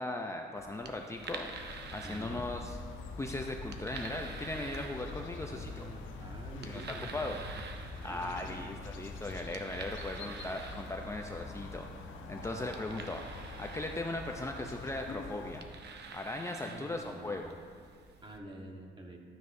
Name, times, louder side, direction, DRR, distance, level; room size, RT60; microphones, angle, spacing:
voice 1, 0.0-1.5 1.9-2.8 3.2-5.9 6.7-7.4 8.0-11.9 12.3-13.2 13.6-15.6 16.1-17.5, left 2 dB, 15° left, 2 dB, 0.6 m, -38 dB
sound 1, 0.6-18.4, right 4 dB, 55° right, 0.9 m, -49 dB
sound 2, 1.5-15.6, left 3 dB, 80° left, 1.0 m, -45 dB
voice 2, 2.0-2.4 5.4-7.4 8.0-8.9 16.6-17.4 18.2-19.2, right 1 dB, 25° right, 1 dB, 1.4 m, -48 dB
12.5 x 9.3 x 2.7 m, 2.1 s
cardioid pair, 90°, 20 cm